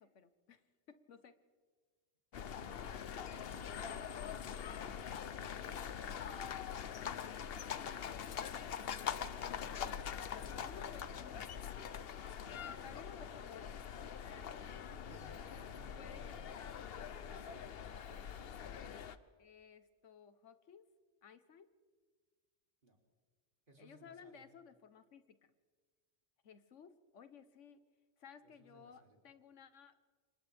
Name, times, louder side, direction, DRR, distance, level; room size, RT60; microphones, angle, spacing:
voice 1, 0.0-1.4 10.1-11.5 12.7-13.8 16.0-16.8 19.4-20.8 21.2-21.7 23.8-25.5 26.4-27.8 28.2-29.9, left 6 dB, 85° left, 11 dB, 1.3 m, -57 dB
sound 1, 2.3-19.2, left 8 dB, 60° left, 0.9 m, -43 dB
voice 2, 2.6-6.2 9.5-11.1 12.4-13.1 14.4-16.7 17.0-17.7 22.8-23.0 23.7-24.4 28.4-29.2, right 1 dB, 45° right, 1 dB, 3.0 m, -61 dB
29.0 x 25.5 x 3.4 m, 1.5 s
omnidirectional pair, 1.2 m